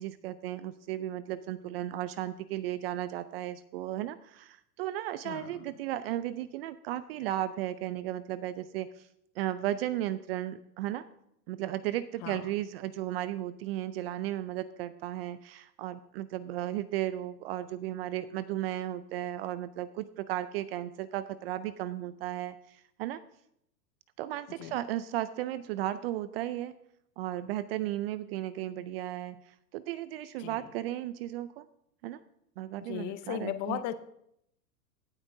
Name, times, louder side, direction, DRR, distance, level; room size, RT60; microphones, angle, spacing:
voice 1, 0.0-9.1 9.4-11.1 11.5-23.2 24.2-26.7 27.2-31.7 32.0-32.2 32.6-33.8, right 13 dB, 40° right, 15 dB, 0.5 m, -35 dB
voice 2, 5.2-5.6 12.2-12.5 24.6-24.8 30.4-30.7 32.8-33.9, left 12 dB, 35° left, 11 dB, 0.8 m, -37 dB
16.5 x 8.6 x 2.7 m, 0.74 s
hypercardioid pair, 115°, 48 cm